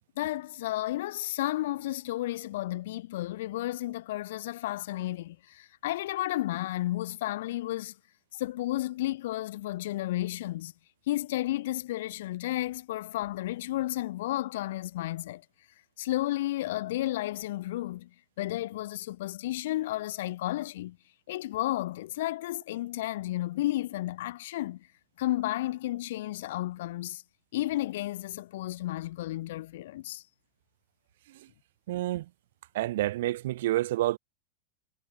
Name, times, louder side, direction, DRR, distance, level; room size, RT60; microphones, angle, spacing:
voice 1, 0.2-7.9 8.3-10.7 11.1-15.4 16.0-18.1 18.4-21.0 21.3-24.9 25.2-27.2 27.5-30.2, left 15 dB, 55° left, 4.3 m, -32 dB
voice 2, 31.9-32.3 32.7-34.2, right 15 dB, 55° right, 2.0 m, -28 dB
figure-of-eight pair, 90°, 0 cm